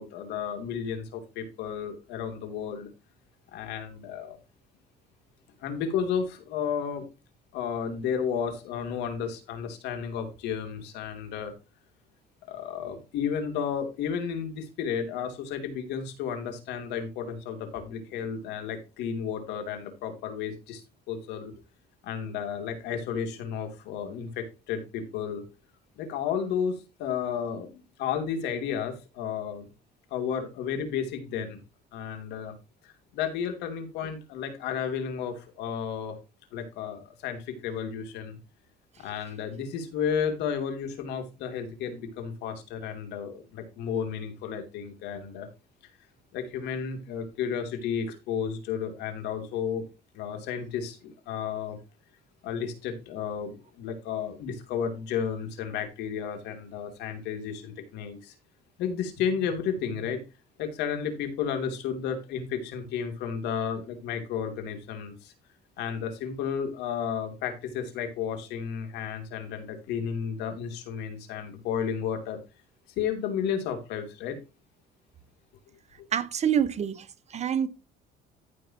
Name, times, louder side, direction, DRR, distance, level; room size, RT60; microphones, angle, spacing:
voice 1, 0.0-2.9 3.5-4.4 5.6-7.0 7.5-11.5 12.5-20.8 21.1-21.5 22.0-25.4 26.0-29.7 30.1-31.6 31.9-32.5 32.8-36.2 36.5-38.4 39.0-45.5 46.3-49.8 50.1-51.8 52.4-58.3 58.8-60.2 60.6-65.3 65.8-72.4 73.0-74.4, left 7 dB, 90° left, 2.9 m, -32 dB
voice 2, 76.1-77.7, right 8 dB, 40° right, 1.2 m, -27 dB
14.5 x 5.7 x 2.9 m
cardioid pair, 110°, 17 cm